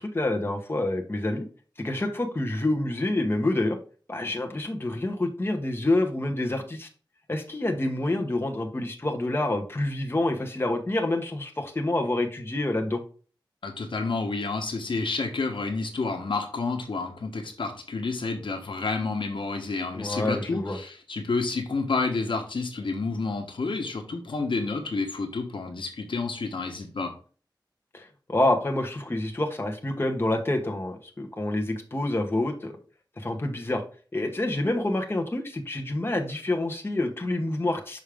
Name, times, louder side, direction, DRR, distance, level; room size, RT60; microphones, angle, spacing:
voice 1, 0.0-1.4 1.8-3.8 4.1-6.9 7.3-13.0 19.9-20.8 27.9-32.8 33.2-33.8 34.1-38.0, left 2 dB, 30° left, 3 dB, 1.1 m, -27 dB
voice 2, 13.6-27.1, left 3 dB, 85° left, 5 dB, 1.1 m, -30 dB
6.2 x 5.1 x 3.5 m, 0.39 s
wide cardioid pair, 85°, 8 cm